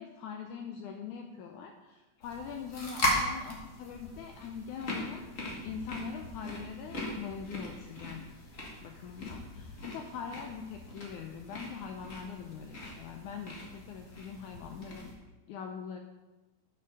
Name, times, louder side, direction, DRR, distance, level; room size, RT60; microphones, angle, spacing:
voice 1, 0.0-5.2 5.6-8.2 8.8-15.1 15.5-16.0, left 6 dB, 80° left, 4 dB, 1.8 m, -42 dB
sound 1, 2.2-15.1, left 1 dB, 45° left, 0.9 m, -39 dB
7.1 x 6.0 x 6.3 m, 1.1 s
omnidirectional pair, 4.0 m